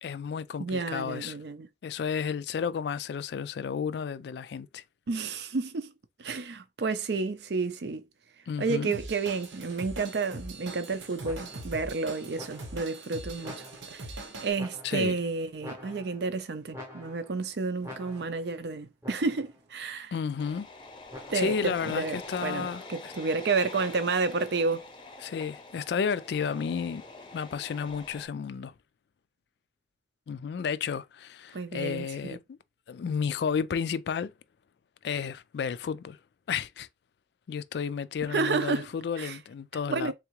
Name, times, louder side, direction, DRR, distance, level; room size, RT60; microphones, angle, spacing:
voice 1, 0.0-1.4 1.8-4.8 8.5-8.9 14.8-15.2 20.1-20.7 21.3-23.1 25.2-27.0 27.3-28.7 30.3-32.6 32.9-34.3 35.0-36.2 36.5-36.9 37.5-40.1, left 6 dB, 65° left, 0.3 m, -32 dB
voice 2, 0.6-1.7 5.1-5.9 6.2-8.0 8.6-13.7 13.9-14.1 14.4-20.1 21.3-24.9 31.5-32.4 38.3-38.9 39.2-39.4 39.9-40.1, right 4 dB, 65° right, 0.5 m, -31 dB
Drum kit / Drum, 8.9-14.5, right 2 dB, 90° right, 0.9 m, -42 dB
sound 1, 11.2-11.8 12.4-12.9 13.4-14.1 14.6-15.2 15.6-16.4 16.7-17.4 17.8-18.5 19.0-19.6 21.1-21.7, left 1 dB, 15° right, 0.8 m, -46 dB
sound 2, 20.4-28.3, left 2 dB, 25° left, 0.6 m, -45 dB
3.6 x 3.5 x 3.0 m
head